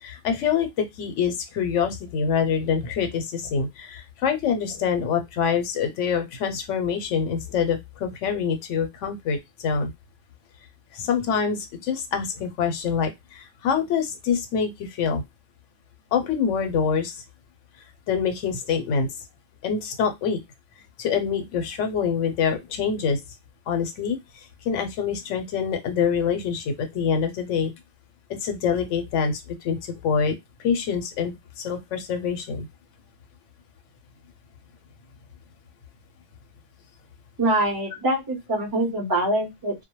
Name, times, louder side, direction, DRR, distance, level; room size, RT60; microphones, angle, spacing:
voice 1, 0.0-9.9 10.9-15.2 16.1-17.2 18.1-19.1 19.6-20.4 21.0-23.2 23.7-24.2 24.6-27.7 28.3-30.4 30.6-32.7, left 6 dB, 90° left, 7 dB, 0.9 m, -25 dB
voice 2, 37.4-39.7, right 1 dB, 20° right, 0 dB, 0.7 m, -24 dB
2.2 x 2.0 x 2.9 m, 0.18 s
omnidirectional pair, 1.2 m